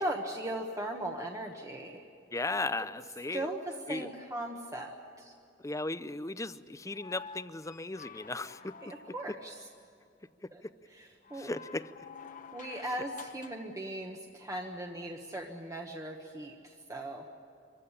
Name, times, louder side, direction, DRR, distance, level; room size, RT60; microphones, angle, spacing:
voice 1, 0.0-2.0 3.3-5.3 8.8-9.7 10.5-10.6 10.9-11.5 12.5-17.2, right 1 dB, 15° right, 2 dB, 1.3 m, -38 dB
voice 2, 2.3-3.5 3.9-4.1 5.6-8.7 11.4-11.9, left 2 dB, 15° left, 14 dB, 0.6 m, -36 dB
sound 1, 6.9-9.4 11.2-13.7 15.4-15.5, left 5 dB, 45° left, 1.0 m, -49 dB
25.0 x 15.5 x 9.9 m, 2.6 s
head